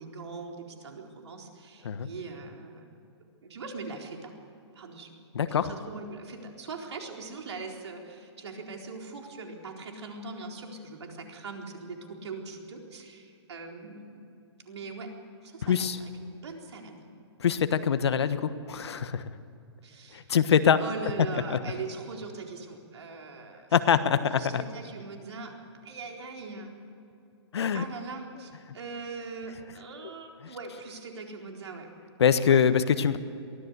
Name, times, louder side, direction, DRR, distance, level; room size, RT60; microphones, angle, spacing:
voice 1, 0.0-2.9 3.4-4.3 4.7-5.1 5.5-14.2 14.7-15.1 15.4-17.1 19.8-20.3 20.8-23.7 24.3-25.5 25.8-26.7 27.7-31.9 32.5-32.6, right 4 dB, 70° right, 2 dB, 4.1 m, -41 dB
voice 2, 5.3-5.7 15.6-16.0 17.4-19.2 20.1-20.8 21.3-21.6 23.7-24.6 27.5-27.8 32.2-33.2, left 7 dB, 65° left, 11 dB, 1.3 m, -24 dB
23.0 x 16.0 x 8.2 m, 2.8 s
hypercardioid pair, 175°, 15 cm